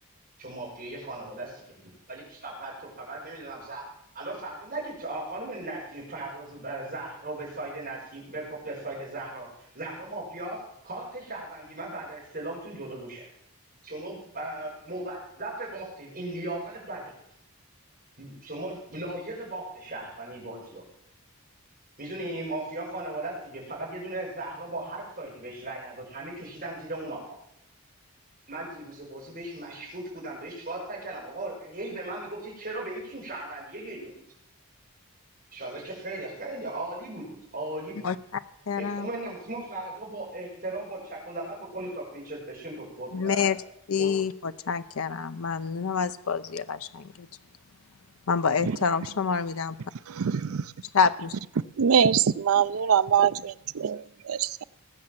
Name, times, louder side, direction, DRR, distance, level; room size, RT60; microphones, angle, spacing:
voice 1, 0.4-3.8 4.1-13.3 13.8-17.1 18.2-20.8 22.0-27.4 28.5-34.2 35.5-38.1 38.8-43.5 44.0-44.1, right 2 dB, 40° right, 5.9 m, -37 dB
voice 2, 38.0-38.4 38.7-39.1 43.1-43.6 43.9-47.3 48.3-49.8 50.9-51.4, left 6 dB, 70° left, 0.6 m, -27 dB
voice 3, 50.1-50.6 51.8-54.6, right 7 dB, 70° right, 0.5 m, -24 dB
19.5 x 7.6 x 7.5 m
head